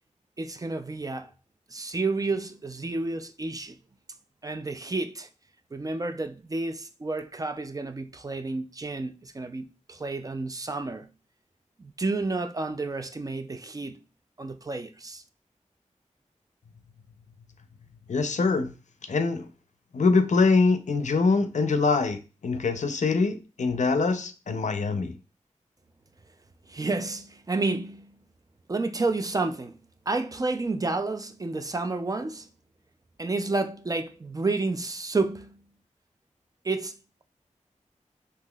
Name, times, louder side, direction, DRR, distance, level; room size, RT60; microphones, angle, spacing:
voice 1, 0.4-1.3 1.7-3.8 4.4-5.3 5.7-11.1 11.8-14.0 14.4-15.2 26.7-28.2 28.7-29.8 30.1-32.5 33.2-35.6 36.6-37.0, right 3 dB, 30° right, 0.3 m, -30 dB
voice 2, 18.1-18.7 19.1-19.5 19.9-25.1, left 4 dB, 65° left, 0.5 m, -24 dB
3.6 x 2.7 x 2.2 m
cardioid pair, 50°, 13 cm